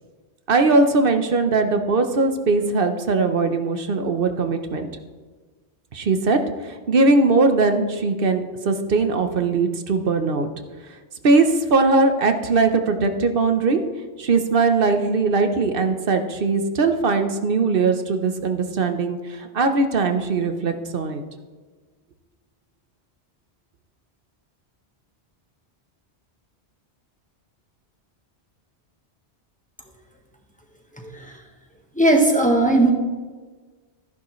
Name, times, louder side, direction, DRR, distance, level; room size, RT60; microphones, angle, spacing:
voice 1, 0.5-4.9 5.9-10.5 11.2-13.8 14.2-21.2, right 3 dB, 55° right, 7 dB, 1.0 m, -20 dB
voice 2, 31.0-31.4 31.9-32.9, right 2 dB, 5° left, 1 dB, 1.3 m, -18 dB
14.0 x 10.5 x 3.1 m, 1.4 s
omnidirectional pair, 1.1 m